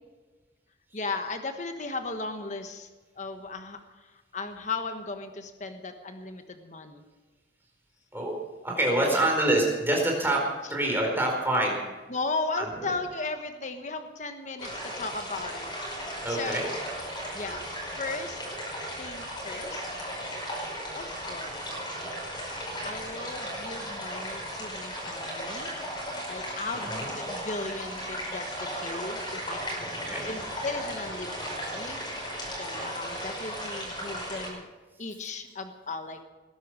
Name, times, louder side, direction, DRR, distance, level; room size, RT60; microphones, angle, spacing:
voice 1, 0.9-2.9 3.2-7.0 9.0-9.4 10.6-10.8 12.1-15.7 16.1-16.7 17.3-17.7 17.9-18.4 19.0-19.9 20.9-21.6 22.8-25.7 26.3-32.0 32.5-34.7 35.0-36.2, left 3 dB, 40° left, 7 dB, 1.2 m, -36 dB
voice 2, 8.6-10.4 10.7-11.8 12.6-12.7 16.2-16.7 26.7-27.1 29.8-30.3, right 1 dB, 10° right, -1 dB, 4.5 m, -26 dB
sound 1, 14.6-34.5, equal, 25° left, 5.4 m, -36 dB
19.5 x 11.0 x 6.2 m, 1.3 s
head